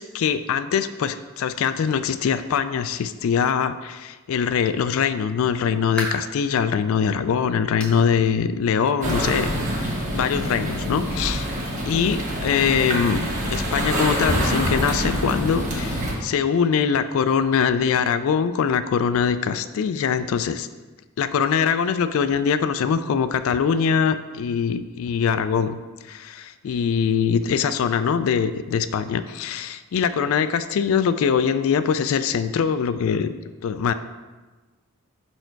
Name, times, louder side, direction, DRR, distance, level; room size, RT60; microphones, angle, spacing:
voice 1, 0.0-11.5 11.9-20.7 21.2-25.8 26.1-33.3 33.6-33.9, left 7 dB, 70° left, 11 dB, 0.3 m, -23 dB
sound 1, 5.9-6.4 6.9-7.0 7.8-8.1 8.4-8.5 9.0-9.1 10.2-10.3, equal, 5° left, 0.8 m, -33 dB
sound 2, 9.0-16.1, equal, 35° right, 1.2 m, -25 dB
5.5 x 4.4 x 4.5 m, 1.2 s
head